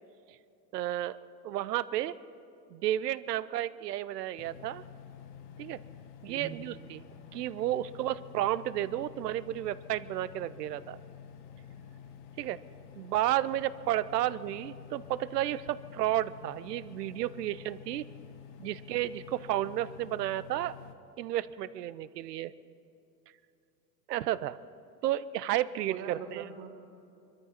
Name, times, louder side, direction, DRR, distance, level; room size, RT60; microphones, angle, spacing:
voice 1, 0.7-1.2 1.4-2.1 2.7-4.8 5.6-5.8 6.2-7.0 7.3-11.0 12.4-12.6 13.0-18.0 18.6-20.7 21.2-22.5 24.1-24.6 25.0-26.4, right 13 dB, 75° right, 17 dB, 0.7 m, -32 dB
sound 1, 4.4-20.9, left 8 dB, 55° left, 1.5 m, -49 dB
voice 2, 6.3-6.6 25.9-26.7, right 7 dB, 50° right, 2 dB, 2.5 m, -42 dB
23.0 x 13.5 x 4.3 m, 2.7 s
hypercardioid pair, 90°, 48 cm